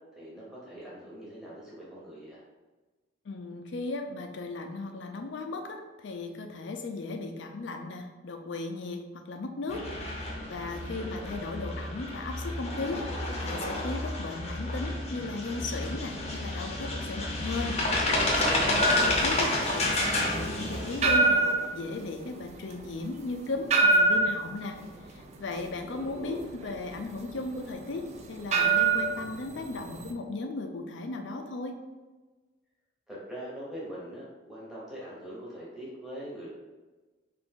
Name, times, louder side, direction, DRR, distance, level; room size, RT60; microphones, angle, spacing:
voice 1, 0.1-2.4 10.9-11.4 18.7-19.2 25.9-26.5 33.1-36.5, equal, ahead, -7 dB, 1.0 m, -42 dB
voice 2, 3.3-9.8 10.5-17.8 18.4-21.4 21.7-24.8 25.1-31.8, left 3 dB, 65° left, 4 dB, 0.4 m, -36 dB
sound 1, 9.7-21.2, left 1 dB, 35° left, 0.7 m, -30 dB
sound 2, 18.8-30.1, right 3 dB, 35° right, 0.3 m, -27 dB
3.5 x 2.5 x 3.6 m, 1.2 s
head